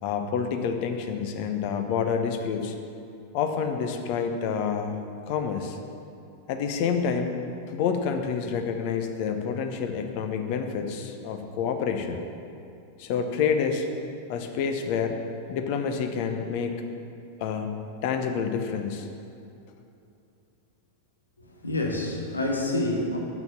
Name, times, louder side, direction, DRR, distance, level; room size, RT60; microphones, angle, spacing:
voice 1, 0.0-2.7 3.3-5.8 6.5-7.4 7.7-12.2 13.0-13.9 14.3-15.2 15.5-16.8 17.4-19.1, left 6 dB, 45° left, 5 dB, 0.8 m, -28 dB
voice 2, 21.4-23.2, left 1 dB, 80° left, 0 dB, 1.1 m, -28 dB
7.1 x 6.0 x 7.1 m, 2.7 s
figure-of-eight pair, 90°, 0 cm